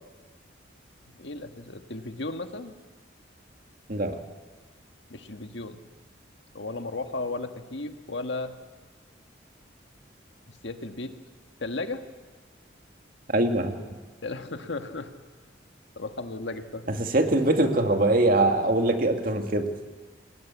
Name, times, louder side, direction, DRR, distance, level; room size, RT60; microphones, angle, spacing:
voice 1, 1.2-2.8 5.1-5.8 6.5-8.6 10.5-11.1 11.6-12.0 14.2-15.1 15.9-16.9, left 2 dB, 65° left, 6 dB, 1.7 m, -35 dB
voice 2, 3.9-4.2 13.3-13.8 16.9-19.7, right 2 dB, 45° right, 5 dB, 2.1 m, -23 dB
29.0 x 20.0 x 8.4 m, 1.4 s
head